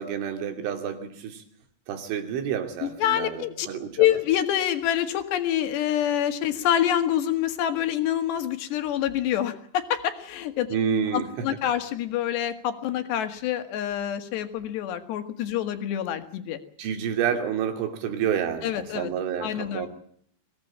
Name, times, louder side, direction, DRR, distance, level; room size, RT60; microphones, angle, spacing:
voice 1, 0.0-1.4 1.9-3.9 10.7-11.5 16.8-19.9, right 8 dB, 90° right, 6 dB, 5.2 m, -29 dB
voice 2, 2.8-3.7 4.0-10.7 11.1-16.6 18.6-19.1 19.4-19.9, left 11 dB, 70° left, 8 dB, 3.9 m, -26 dB
23.5 x 17.0 x 8.6 m, 0.65 s
omnidirectional pair, 5.4 m